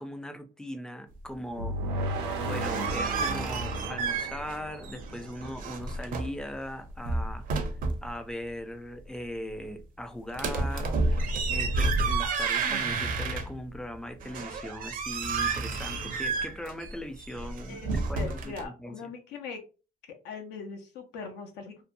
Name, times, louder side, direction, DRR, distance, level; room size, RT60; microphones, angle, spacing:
voice 1, 0.0-1.8 2.4-7.6 8.0-10.9 11.4-19.1, left 1 dB, 5° left, 0.4 m, -39 dB
sound 1, 1.6-5.6, right 2 dB, 90° right, 0.7 m, -34 dB
sound 2, 2.5-4.6 4.8-6.4 6.9-8.1 10.3-13.8 14.2-18.6, right 3 dB, 55° right, 0.5 m, -30 dB
voice 2, 17.7-19.6 20.2-21.8, left 5 dB, 85° left, 0.7 m, -41 dB
2.7 x 2.1 x 2.5 m
cardioid pair, 110°, 17 cm